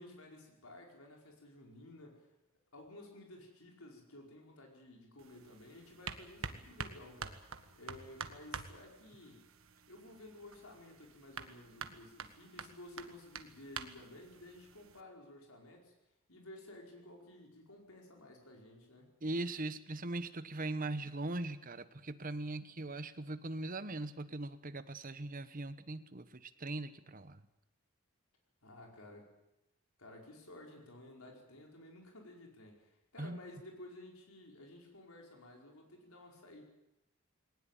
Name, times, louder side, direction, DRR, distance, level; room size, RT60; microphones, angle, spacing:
voice 1, 0.0-2.3 2.7-7.4 7.7-9.4 9.9-15.9 16.3-19.1 28.6-29.3 30.0-36.6, left 1 dB, 85° left, 1 dB, 4.9 m, -54 dB
sound 1, 5.2-15.0, right 5 dB, 70° right, 1.6 m, -48 dB
voice 2, 19.2-27.4 33.2-33.4, right 2 dB, 40° right, 12 dB, 1.2 m, -40 dB
20.5 x 19.0 x 9.1 m, 0.91 s
head